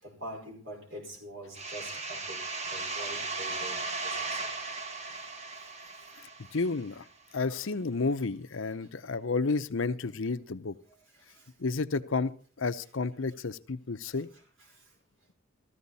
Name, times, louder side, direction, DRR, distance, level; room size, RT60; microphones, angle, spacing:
voice 1, 0.0-2.4 2.6-4.5 5.6-5.7 5.9-6.0 7.5-7.7 11.2-11.5 14.3-14.8, right 1 dB, 65° right, 1 dB, 4.9 m, -45 dB
sound 1, 1.5-7.0, right 3 dB, 30° right, 1.2 m, -37 dB
voice 2, 6.5-7.0 7.3-10.7 11.6-12.3 12.6-14.3, left 4 dB, 65° left, 11 dB, 0.7 m, -31 dB
15.0 x 14.0 x 4.1 m, 0.43 s
head